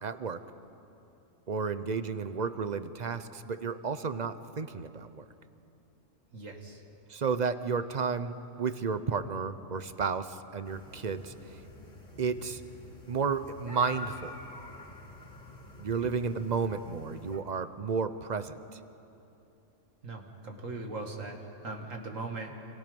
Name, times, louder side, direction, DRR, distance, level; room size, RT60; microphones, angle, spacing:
voice 1, 0.0-0.4 1.5-5.2 7.1-11.6 12.2-12.6 13.1-14.4 15.8-18.8, right 5 dB, 40° right, 12 dB, 0.7 m, -32 dB
voice 2, 6.3-6.8 16.0-16.1 20.0-22.5, right 3 dB, 75° right, 2 dB, 2.5 m, -40 dB
sound 1, 10.6-17.4, left 2 dB, 55° left, 2.8 m, -47 dB
29.5 x 26.0 x 5.3 m, 2.8 s
omnidirectional pair, 1.4 m